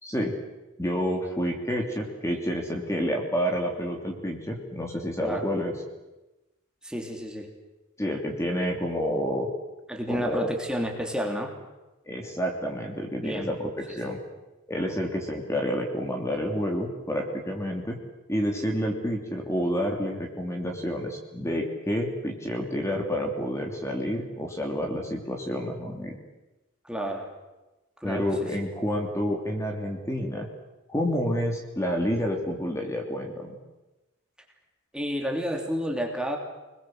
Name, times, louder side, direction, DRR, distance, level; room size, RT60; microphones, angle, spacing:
voice 1, 0.0-0.3 0.8-5.7 8.0-9.5 10.1-10.5 12.1-14.2 14.7-18.0 18.3-26.2 28.0-30.5 30.9-33.6, equal, 15° left, 1 dB, 3.0 m, -29 dB
voice 2, 6.8-7.5 9.9-11.5 13.2-13.5 14.0-14.2 26.8-27.3 28.0-28.5 34.9-36.4, equal, 5° right, 1 dB, 3.1 m, -30 dB
27.0 x 21.0 x 7.9 m, 1.0 s
head